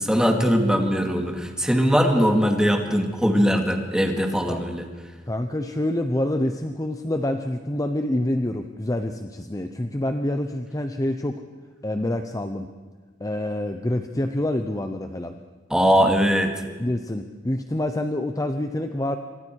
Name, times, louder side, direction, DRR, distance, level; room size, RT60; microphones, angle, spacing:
voice 1, 0.0-4.9 15.7-16.5, equal, 5° right, 3 dB, 2.3 m, -20 dB
voice 2, 5.3-11.4 11.8-12.7 13.2-15.4 16.8-19.2, left 1 dB, 20° left, 7 dB, 0.8 m, -27 dB
27.0 x 25.0 x 4.7 m, 1.4 s
head